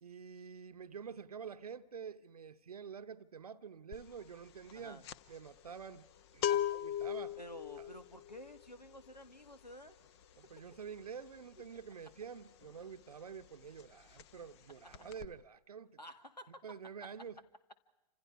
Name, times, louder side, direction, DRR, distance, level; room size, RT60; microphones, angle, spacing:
voice 1, 0.0-5.0 5.3-6.1 6.3-7.4 7.8-7.9 10.4-16.0 16.6-17.4, right 6 dB, 65° right, 1.0 m, -48 dB
sound 1, 3.9-4.2 4.4-13.0 13.3-13.5 13.8-14.6 14.9-15.3, left 11 dB, 40° left, 1.1 m, -39 dB
voice 2, 4.7-5.1 6.5-7.0 7.4-10.0 16.0-16.6, left 1 dB, 85° left, 2.0 m, -52 dB
29.0 x 26.5 x 4.7 m
figure-of-eight pair, 110°, 21 cm